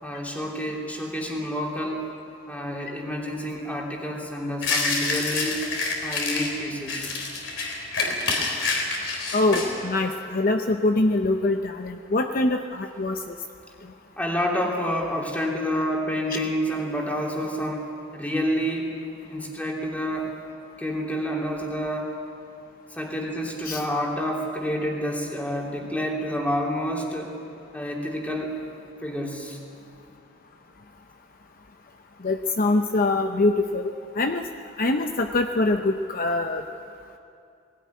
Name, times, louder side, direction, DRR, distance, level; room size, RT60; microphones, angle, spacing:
voice 1, 0.0-2.1 2.5-5.6 6.0-7.3 14.2-19.0 19.3-20.3 20.8-22.2 22.9-27.3 27.7-28.5 29.0-29.6, equal, 10° left, -2 dB, 3.1 m, -28 dB
sound 1, 4.6-6.5 6.9-9.7, left 3 dB, 65° left, 3.8 m, -27 dB
voice 2, 9.3-13.4 23.6-23.8 32.2-34.4 34.8-36.6, left 2 dB, 45° left, 5 dB, 0.7 m, -24 dB
19.5 x 17.5 x 9.5 m, 2.5 s
head